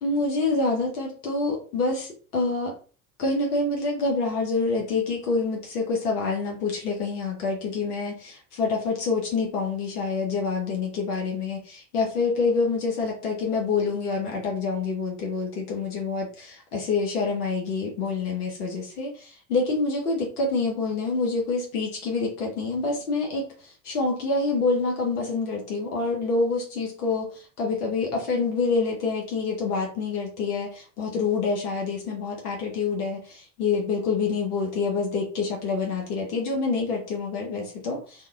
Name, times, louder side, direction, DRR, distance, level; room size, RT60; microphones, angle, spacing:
voice 1, 0.0-2.7 3.2-38.3, left 4 dB, 80° left, 0 dB, 0.8 m, -27 dB
2.8 x 2.1 x 2.3 m, 0.38 s
figure-of-eight pair, 70°, 45 cm